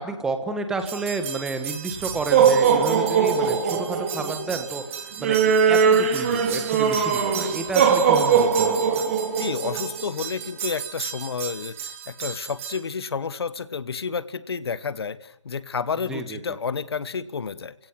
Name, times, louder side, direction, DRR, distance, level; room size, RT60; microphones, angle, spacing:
voice 1, 0.0-9.1 16.1-16.4, right 3 dB, 5° right, 7 dB, 1.5 m, -31 dB
sound 1, 0.9-12.8, right 6 dB, 25° right, 3.1 m, -22 dB
voice 2, 9.4-17.7, left 5 dB, 55° left, 15 dB, 1.6 m, -30 dB
29.5 x 17.5 x 9.6 m, 0.76 s
hypercardioid pair, 165°, 15 cm